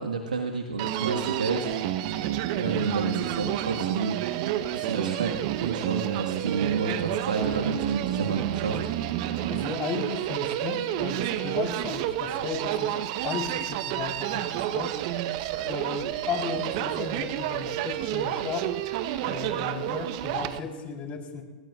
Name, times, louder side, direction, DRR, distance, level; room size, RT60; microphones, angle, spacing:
voice 1, 0.0-1.7 2.6-4.2 4.5-5.3 5.6-8.8, right 4 dB, 85° right, 2 dB, 1.6 m, -30 dB
Human voice, 0.8-20.6, right 12 dB, 50° right, 0.9 m, -29 dB
voice 2, 9.5-13.0 13.2-14.9 15.6-18.7 19.2-21.4, left 6 dB, 35° left, 2 dB, 3.8 m, -35 dB
28.5 x 17.0 x 2.4 m, 1.3 s
hypercardioid pair, 105°, 4 cm